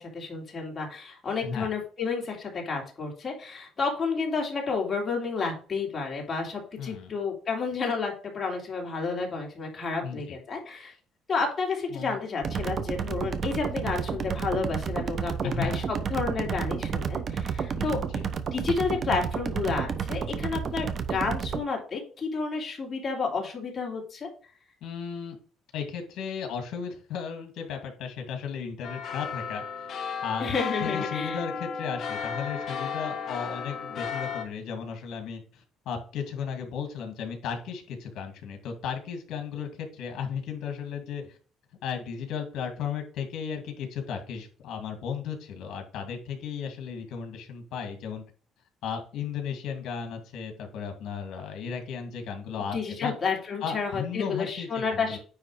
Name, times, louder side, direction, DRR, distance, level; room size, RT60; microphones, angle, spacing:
voice 1, 0.0-10.9 11.3-18.0 18.5-24.3 30.4-31.4 52.7-55.2, left 4 dB, 30° left, 0 dB, 2.9 m, -31 dB
voice 2, 6.8-7.1 10.0-10.4 11.9-12.2 15.4-15.8 17.7-18.2 24.8-25.4 25.7-29.9 30.2-30.5 30.8-41.4 41.8-48.2 48.8-53.1 53.6-55.2, left 7 dB, 70° left, 4 dB, 2.3 m, -35 dB
sound 1, 12.4-21.6, right 6 dB, 40° right, 0.9 m, -31 dB
sound 2, 28.8-34.4, left 6 dB, 45° left, 1.4 m, -34 dB
9.7 x 3.4 x 4.9 m, 0.40 s
cardioid pair, 140°, 0 cm